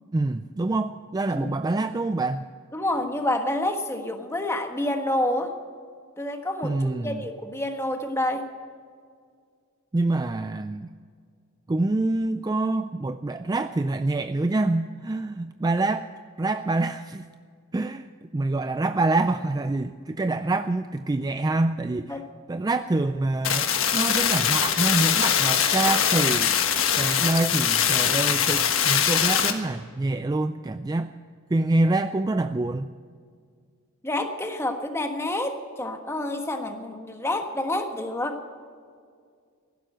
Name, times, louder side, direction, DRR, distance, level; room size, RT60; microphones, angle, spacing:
voice 1, 0.1-2.5 6.6-7.2 9.9-10.9 11.7-16.1 16.4-17.3 17.7-18.1 18.3-22.2 22.5-26.6 27.0-31.1 31.5-32.9, right 2 dB, 20° right, 10 dB, 0.3 m, -26 dB
voice 2, 2.7-5.5 6.2-8.5 22.1-22.2 34.0-38.4, left 1 dB, 10° left, 5 dB, 1.4 m, -28 dB
sound 1, 23.4-29.5, left 8 dB, 65° left, 1.4 m, -22 dB
15.5 x 12.0 x 7.8 m, 2.1 s
head